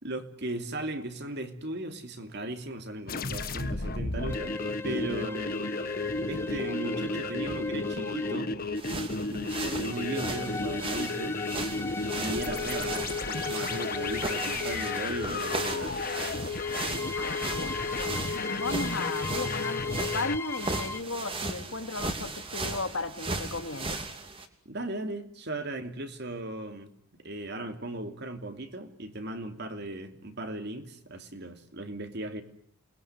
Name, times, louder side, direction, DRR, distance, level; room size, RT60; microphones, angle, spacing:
voice 1, 0.0-4.6 4.8-5.6 6.3-8.5 9.3-11.4 12.1-16.0 24.6-26.9 27.2-32.4, right 1 dB, 50° right, 7 dB, 2.9 m, -37 dB
sound 1, 3.1-20.4, left 3 dB, 45° left, 1.4 m, -33 dB
sound 2, 4.3-8.6 9.8-15.3 16.5-21.0, left 4 dB, 10° left, 1.1 m, -39 dB
sound 3, 8.8-24.5, right 3 dB, 25° right, 2.9 m, -37 dB
voice 2, 17.1-24.0, left 3 dB, 65° left, 8 dB, 2.4 m, -36 dB
29.0 x 21.5 x 9.6 m, 0.63 s
head